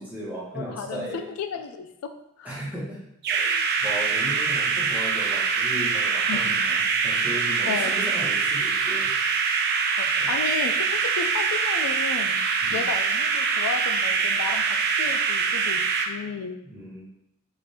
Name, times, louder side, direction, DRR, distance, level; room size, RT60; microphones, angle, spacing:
voice 1, 0.0-1.2 2.4-3.0 3.3-9.1 10.2-10.3 12.6-12.9 16.6-17.0, equal, 10° right, -7 dB, 1.0 m, -36 dB
voice 2, 0.5-1.1 1.4-2.1 2.4-2.6 6.3-6.7 7.6-7.9 10.0-12.4 12.7-16.6, left 6 dB, 80° left, 7 dB, 0.3 m, -33 dB
sound 1, 3.2-16.1, right 5 dB, 50° right, 0.4 m, -24 dB
4.8 x 2.5 x 2.7 m, 0.82 s
head